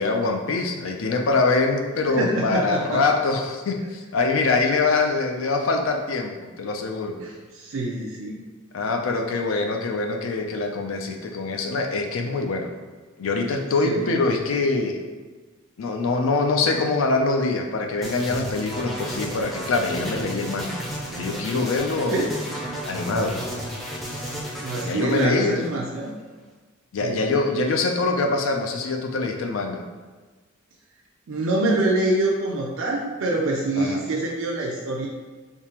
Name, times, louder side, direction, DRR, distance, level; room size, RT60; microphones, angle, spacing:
voice 1, 0.0-7.2 8.7-12.7 13.2-15.0 15.8-20.8 21.1-22.3 22.8-23.4 24.8-25.8 26.9-29.8 33.8-34.0, left 3 dB, 70° left, 3 dB, 0.4 m, -24 dB
voice 2, 2.0-3.0 7.2-8.4 13.8-14.2 22.1-22.3 24.6-26.1 27.0-27.3 31.3-35.1, right 2 dB, 65° right, -2 dB, 0.4 m, -25 dB
sound 1, 18.0-26.1, equal, ahead, 0.5 m, -33 dB
3.6 x 2.8 x 2.9 m, 1.3 s
head